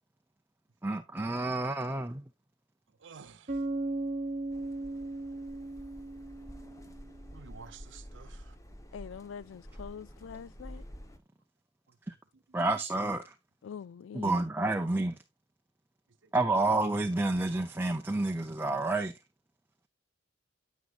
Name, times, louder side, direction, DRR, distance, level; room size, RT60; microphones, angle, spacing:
voice 1, 0.8-2.2 12.1-12.2 12.5-13.2 14.1-15.1 16.3-19.1, right 2 dB, 10° right, 0.5 m, -29 dB
voice 2, 3.0-3.6 7.3-8.6 12.5-12.6, right 5 dB, 70° right, 0.7 m, -51 dB
Bass guitar, 3.5-7.3, right 2 dB, 40° right, 1.1 m, -37 dB
sound 1, 4.5-11.2, equal, 15° left, 0.9 m, -49 dB
voice 3, 8.9-10.8 13.6-14.4, left 7 dB, 70° left, 0.3 m, -44 dB
9.6 x 8.3 x 2.4 m
head